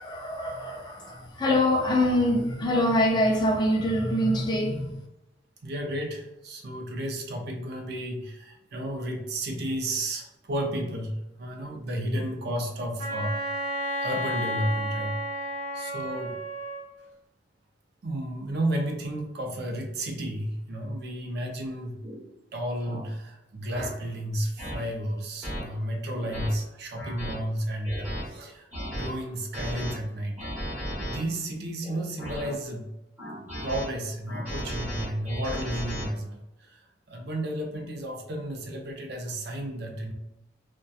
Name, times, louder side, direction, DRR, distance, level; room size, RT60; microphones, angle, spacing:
voice 1, 0.0-5.0, left 1 dB, 25° left, 0.3 m, -24 dB
voice 2, 5.6-13.7 14.0-15.2 15.7-16.4 18.0-22.0 22.5-32.9 33.3-40.1, right 1 dB, 55° right, 0.5 m, -32 dB
Wind instrument woodwind instrument, 13.0-16.9, equal, 85° right, 1.1 m, -32 dB
sound 1, 22.0-22.2 22.8-23.0 23.7-23.9 24.6-24.8 25.4-25.6 26.1-26.5 27.0-27.3 27.8-28.2 28.7-29.1 29.5-29.9 30.4-31.2 31.8-32.5 33.2-33.9 34.3-36.1, equal, 10° right, 0.9 m, -35 dB
2.7 x 2.2 x 2.2 m
head